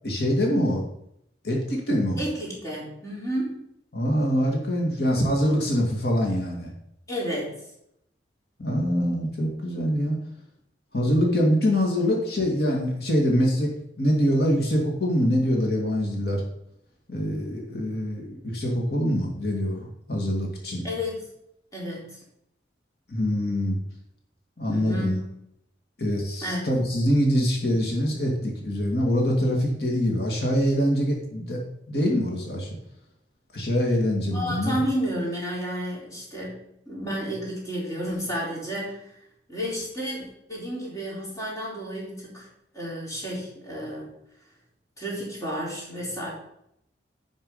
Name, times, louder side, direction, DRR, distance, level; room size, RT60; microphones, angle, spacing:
voice 1, 0.0-0.9 1.4-2.2 3.9-6.7 8.6-10.2 10.9-13.7 14.0-16.4 17.1-20.8 23.1-23.8 24.6-25.2 26.0-31.6 31.9-32.7 33.5-34.8, equal, 60° left, -1 dB, 2.2 m, -24 dB
voice 2, 2.2-3.6 7.1-7.6 20.8-21.3 21.7-22.2 24.7-25.4 26.4-26.7 34.3-39.1 39.5-42.5 42.7-44.1 45.0-46.3, equal, 20° left, -5 dB, 4.0 m, -31 dB
10.5 x 5.3 x 5.6 m, 0.75 s
head